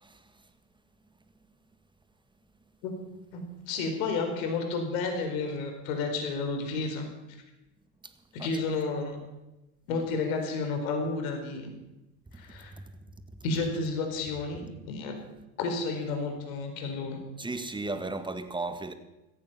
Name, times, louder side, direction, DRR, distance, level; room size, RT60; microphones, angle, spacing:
voice 1, 3.7-7.1 8.3-9.2 9.9-11.7 12.3-12.7 13.4-15.1 15.6-17.2, left 4 dB, 65° left, 4.6 m, -31 dB
voice 2, 17.4-18.9, right 3 dB, 10° right, 1.7 m, -35 dB
17.5 x 14.5 x 5.7 m
hypercardioid pair, 80°, 44 cm